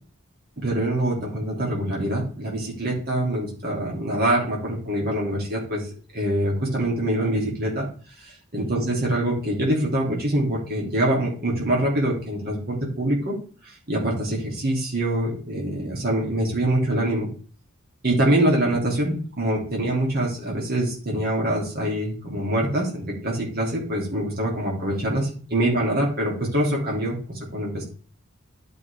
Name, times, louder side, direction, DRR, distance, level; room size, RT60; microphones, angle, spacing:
voice 1, 0.6-5.8 6.1-7.9 8.2-13.4 13.7-17.3 18.0-27.8, right 1 dB, 45° right, -2 dB, 2.8 m, -24 dB
11.0 x 5.4 x 3.4 m, 0.40 s
head